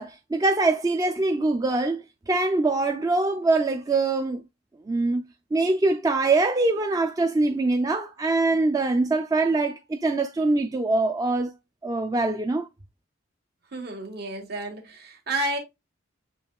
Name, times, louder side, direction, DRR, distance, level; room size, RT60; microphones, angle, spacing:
voice 1, 0.0-4.4 4.9-5.3 5.5-11.5 11.8-12.7, right 2 dB, 20° right, 0.3 m, -23 dB
voice 2, 13.7-15.6, right 1 dB, 55° right, 1.3 m, -31 dB
6.9 x 3.0 x 2.2 m
head